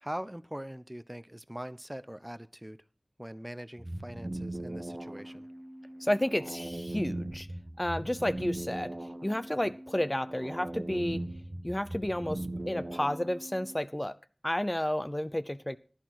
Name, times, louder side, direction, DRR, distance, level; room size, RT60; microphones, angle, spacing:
voice 1, 0.0-2.8 3.2-5.5 9.6-9.8, equal, 15° right, 14 dB, 0.7 m, -42 dB
sound 1, 3.8-13.8, right 1 dB, 40° right, 1.4 m, -39 dB
voice 2, 6.0-7.5 7.8-8.9 9.2-11.2 11.6-14.1 14.4-15.8, left 1 dB, 20° left, 13 dB, 0.7 m, -31 dB
15.0 x 11.5 x 4.7 m, 0.38 s
wide cardioid pair, 45°, 0 cm